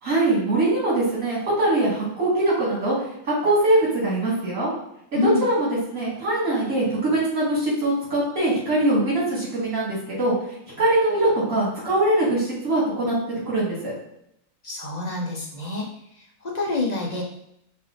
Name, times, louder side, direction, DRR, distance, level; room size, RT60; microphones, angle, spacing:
voice 1, 0.0-2.9 3.2-4.7 5.1-10.3 10.8-13.2 13.5-13.9, right 1 dB, 65° right, -6 dB, 2.5 m, -22 dB
voice 2, 14.6-15.9 16.4-17.2, left 3 dB, 35° left, -2 dB, 0.8 m, -26 dB
5.9 x 2.7 x 3.2 m, 0.77 s
omnidirectional pair, 1.5 m